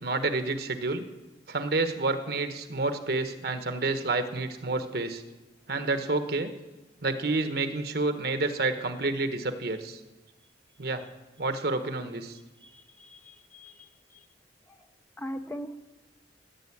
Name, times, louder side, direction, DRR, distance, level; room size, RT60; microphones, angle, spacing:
voice 1, 0.0-1.1 1.5-5.2 5.7-6.5 7.0-10.0 10.8-11.0 11.4-12.3, right 3 dB, 60° right, 8 dB, 1.2 m, -29 dB
voice 2, 12.6-13.9 15.2-15.8, equal, 10° left, 7 dB, 0.7 m, -40 dB
15.5 x 10.0 x 8.6 m, 1.1 s
head